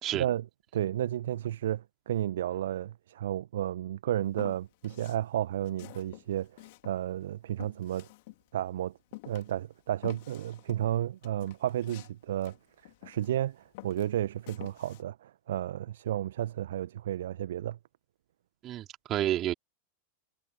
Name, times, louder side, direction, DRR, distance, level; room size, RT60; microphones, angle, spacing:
voice 1, 0.1-0.5 0.7-6.5 6.8-8.1 8.5-9.0 9.2-12.6 13.0-17.8, right 12 dB, 60° right, 1.6 m, -32 dB
Walk footsteps, 4.3-5.2 5.6-8.7 9.1-13.4 13.7-15.0, left 22 dB, 50° left, 3.8 m, -49 dB
voice 2, 18.6-19.5, right 13 dB, 30° right, 3.9 m, -30 dB
figure-of-eight pair, 90°, 0 cm